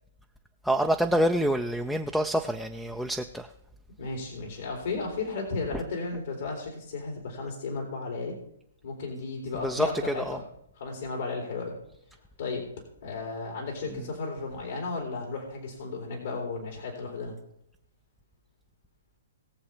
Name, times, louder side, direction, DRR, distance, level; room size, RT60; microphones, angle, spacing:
voice 1, 0.6-3.5 9.6-9.9 10.3-10.4, equal, ahead, 7 dB, 0.6 m, -26 dB
voice 2, 4.0-8.4 8.8-10.4 10.7-11.8 12.4-12.6 13.0-17.3, left 3 dB, 65° left, -1 dB, 3.5 m, -34 dB
20.5 x 7.1 x 3.4 m, 0.79 s
hypercardioid pair, 130°, 0 cm